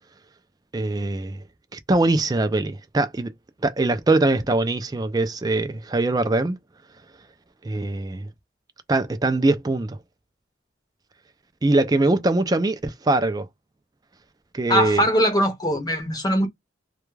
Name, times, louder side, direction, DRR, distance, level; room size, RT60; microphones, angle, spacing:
voice 1, 0.7-1.4 1.7-3.3 3.6-6.6 7.6-8.3 8.9-10.0 11.6-13.5 14.5-15.1, right 2 dB, 20° right, 0.3 m, -22 dB
voice 2, 14.7-16.5, equal, 20° left, 0.6 m, -21 dB
2.3 x 2.2 x 3.1 m
head